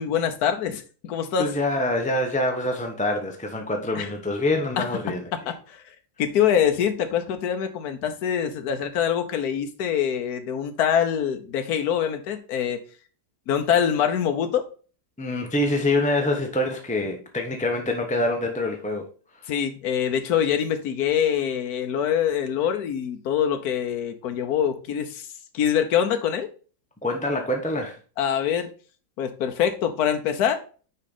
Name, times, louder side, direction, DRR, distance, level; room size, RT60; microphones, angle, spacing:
voice 1, 0.0-1.5 3.9-4.0 4.8-4.9 5.5-5.8 6.2-12.8 13.5-14.7 19.5-25.3 25.5-26.5 28.2-28.7 29.2-30.6, left 8 dB, 70° left, 1.4 m, -24 dB
voice 2, 1.4-5.5 15.2-19.5 27.0-28.0, left 1 dB, 10° left, 0.5 m, -26 dB
6.4 x 5.0 x 4.0 m
omnidirectional pair, 1.8 m